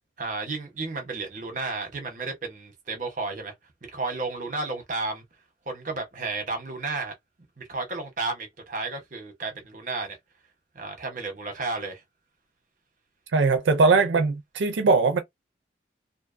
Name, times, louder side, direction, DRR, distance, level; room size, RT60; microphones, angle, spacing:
voice 1, 0.2-3.5 3.9-5.2 5.7-7.1 7.6-10.2 10.7-12.0, right 3 dB, 45° right, 0.9 m, -32 dB
voice 2, 13.3-15.2, right 4 dB, 90° right, 0.4 m, -20 dB
2.5 x 2.2 x 2.4 m
head